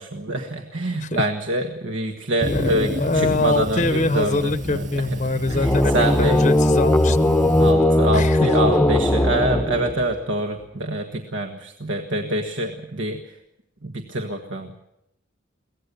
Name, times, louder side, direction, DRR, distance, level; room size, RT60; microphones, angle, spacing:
voice 1, 0.0-4.9 5.5-6.4 7.6-13.2 13.8-14.8, right 1 dB, 70° right, 4 dB, 1.6 m, -25 dB
sound 1, 2.4-7.7, equal, 40° right, 6.6 m, -30 dB
voice 2, 2.5-7.4 8.1-8.7, left 3 dB, 35° left, 12 dB, 0.8 m, -24 dB
sound 2, 5.5-10.2, left 1 dB, 5° left, 0.8 m, -18 dB
23.0 x 18.0 x 7.0 m, 0.82 s
head